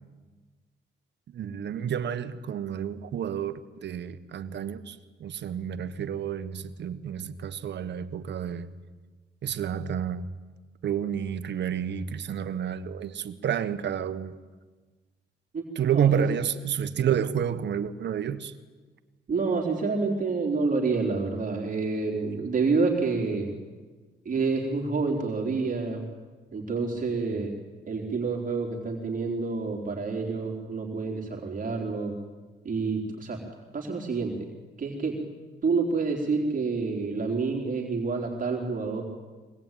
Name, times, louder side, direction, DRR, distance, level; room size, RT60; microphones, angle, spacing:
voice 1, 1.3-8.7 9.4-10.2 10.8-14.4 15.7-18.5, right 8 dB, 60° right, 1.4 m, -30 dB
voice 2, 15.9-16.3 19.3-23.5 24.2-26.0 26.5-27.5 27.9-32.1 32.6-33.4 33.7-34.3 34.8-35.2 35.6-39.0, right 4 dB, 40° right, 4.0 m, -28 dB
24.5 x 19.5 x 9.2 m
cardioid pair, 90°, 20 cm